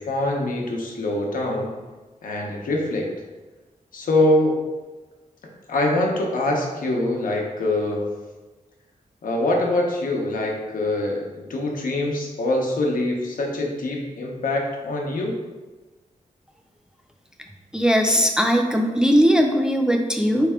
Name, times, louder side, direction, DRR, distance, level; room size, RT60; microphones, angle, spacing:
voice 1, 0.0-1.7 2.2-3.1 3.9-4.6 5.7-8.1 9.2-15.3, left 1 dB, 85° left, 0 dB, 0.9 m, -24 dB
voice 2, 17.7-20.5, equal, 5° right, 3 dB, 0.3 m, -19 dB
4.3 x 3.4 x 3.6 m, 1.2 s
wide cardioid pair, 175°, 14 cm